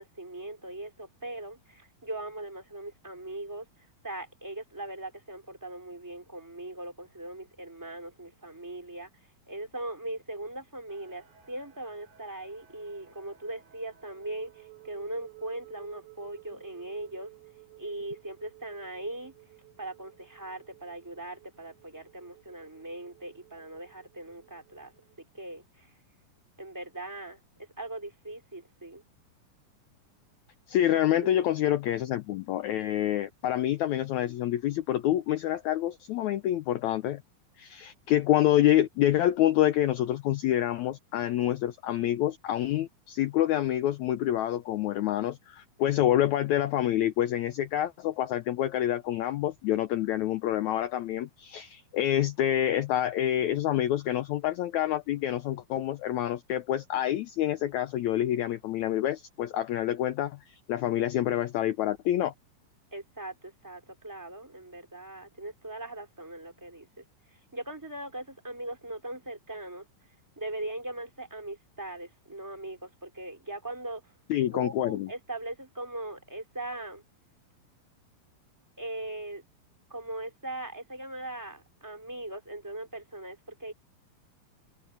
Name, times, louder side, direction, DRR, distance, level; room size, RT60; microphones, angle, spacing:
voice 1, 0.0-3.7 4.0-9.1 9.5-17.3 17.8-19.3 19.8-24.9 25.3-25.9 26.6-27.4 27.8-29.0 31.2-31.3 62.9-67.0 67.5-69.9 70.4-74.0 74.5-77.0 78.8-79.4 79.9-83.7, right 1 dB, 5° right, 3.3 m, -40 dB
sound 1, 10.9-25.2, right 15 dB, 90° right, 6.5 m, -56 dB
voice 2, 30.7-37.2 37.6-62.3 74.3-75.1, left 12 dB, 80° left, 1.7 m, -27 dB
omnidirectional pair, 4.1 m